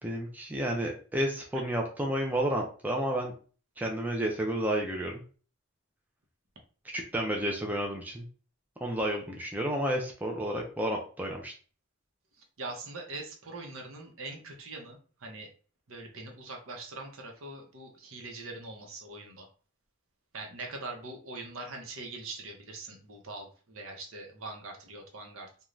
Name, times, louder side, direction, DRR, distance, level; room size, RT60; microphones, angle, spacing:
voice 1, 0.0-3.4 3.8-5.2 6.9-8.3 8.8-11.5, right 1 dB, 10° right, 0 dB, 0.4 m, -31 dB
voice 2, 12.4-15.5 15.9-19.5 20.3-25.5, right 2 dB, 75° right, 2 dB, 0.8 m, -42 dB
2.5 x 2.2 x 3.1 m, 0.40 s
head